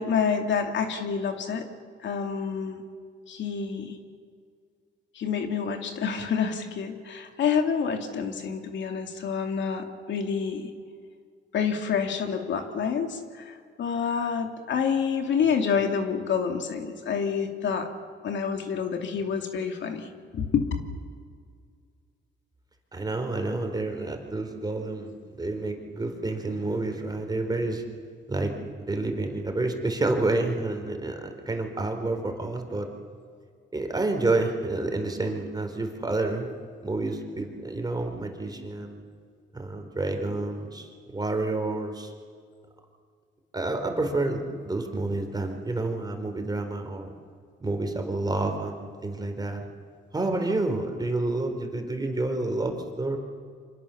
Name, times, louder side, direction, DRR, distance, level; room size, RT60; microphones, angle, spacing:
voice 1, 0.0-1.6 2.0-2.8 3.3-4.0 5.1-10.7 11.5-17.9 18.2-20.7, left 6 dB, 65° left, 5 dB, 2.6 m, -28 dB
voice 2, 22.9-25.1 25.4-27.8 28.3-32.9 33.7-36.5 36.8-39.0 39.5-42.1 43.5-47.1 47.6-49.7 50.1-53.2, right 2 dB, 20° right, 4 dB, 4.2 m, -29 dB
28.0 x 25.5 x 7.2 m, 2.1 s
cardioid pair, 90°, 20 cm